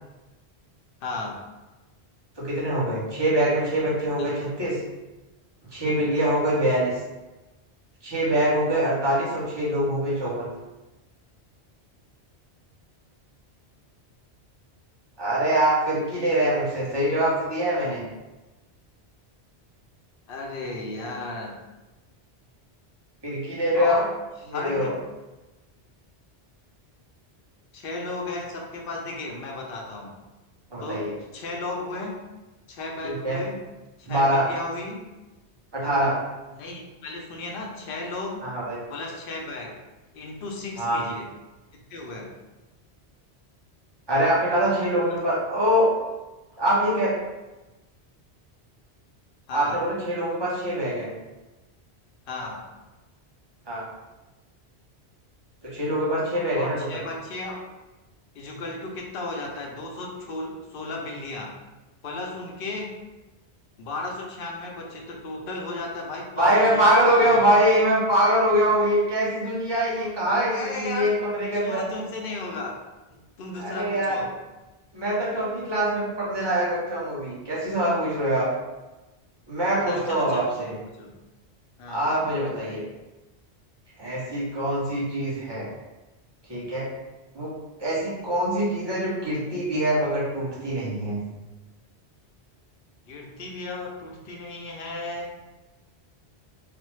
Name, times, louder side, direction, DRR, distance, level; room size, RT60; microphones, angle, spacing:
voice 1, 1.0-1.4 4.2-4.3 20.3-21.5 23.7-24.1 24.4-25.0 27.7-30.1 30.8-31.0 31.3-32.1 32.7-33.6 34.0-35.1 36.5-38.4 38.9-39.7 40.1-41.3 41.9-42.3 49.5-49.8 52.3-52.6 56.5-57.6 58.3-61.5 62.0-62.9 63.8-67.4 70.5-71.2 71.5-72.8 73.4-74.3 79.8-80.5 81.0-81.1 81.8-82.2 93.1-95.3, left 2 dB, 60° left, -1 dB, 0.8 m, -34 dB
voice 2, 2.4-4.8 5.7-6.9 8.0-10.5 15.2-18.0 23.2-24.0 24.5-24.9 30.7-31.1 33.0-33.4 34.1-34.5 35.7-36.2 38.4-38.8 40.8-41.0 44.1-45.9 46.6-47.1 49.5-51.1 53.7-53.9 55.6-56.9 66.4-71.9 73.6-74.2 74.9-78.5 79.5-80.7 81.9-82.8 84.0-85.7 86.5-86.9 87.3-87.5 87.8-91.2, right 1 dB, 25° right, -7 dB, 0.8 m, -24 dB
3.2 x 2.0 x 3.1 m, 1.1 s
omnidirectional pair, 1.1 m